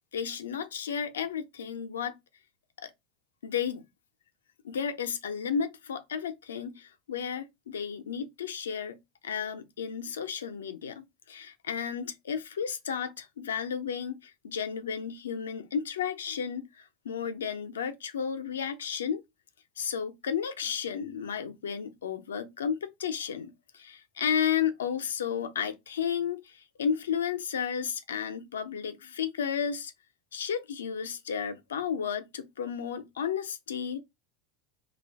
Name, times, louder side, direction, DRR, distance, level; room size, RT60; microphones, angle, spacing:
voice 1, 0.1-2.2 2.8-2.9 3.4-3.9 4.6-9.0 9.2-19.2 19.8-29.9 30.3-34.0, left 7 dB, 85° left, 0.5 m, -33 dB
2.5 x 2.3 x 3.4 m
hypercardioid pair, 95°, 0 cm